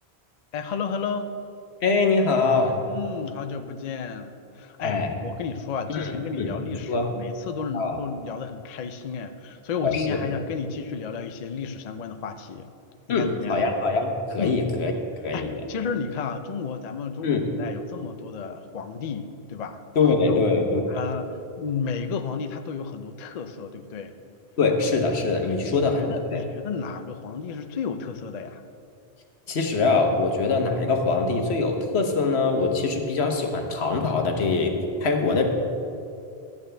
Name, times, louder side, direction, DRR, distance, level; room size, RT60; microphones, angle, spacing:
voice 1, 0.5-1.3 2.9-12.7 13.1-13.6 14.4-14.6 15.3-19.8 20.3-20.4 20.9-24.1 25.5-28.6, left 6 dB, 50° left, 8 dB, 0.5 m, -32 dB
voice 2, 1.8-2.8 4.8-5.1 5.9-6.5 6.9-7.0 7.7-8.0 9.8-10.2 13.1-14.9 15.2-15.5 17.2-17.4 20.0-20.8 24.6-26.0 26.3-26.4 29.5-34.8 35.0-35.4, left 4 dB, 80° left, 3 dB, 1.3 m, -23 dB
13.0 x 8.9 x 3.3 m, 2.6 s
omnidirectional pair, 1.1 m